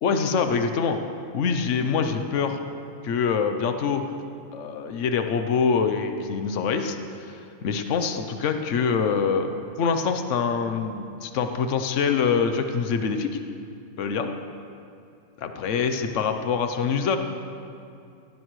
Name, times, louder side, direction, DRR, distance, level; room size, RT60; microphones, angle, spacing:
voice 1, 0.0-1.0 1.3-2.6 3.0-4.0 4.5-7.0 7.3-9.5 9.8-13.4 14.0-14.3 15.4-17.2, left 6 dB, 70° left, 7 dB, 1.1 m, -25 dB
17.0 x 17.0 x 3.2 m, 2.5 s
omnidirectional pair, 1.3 m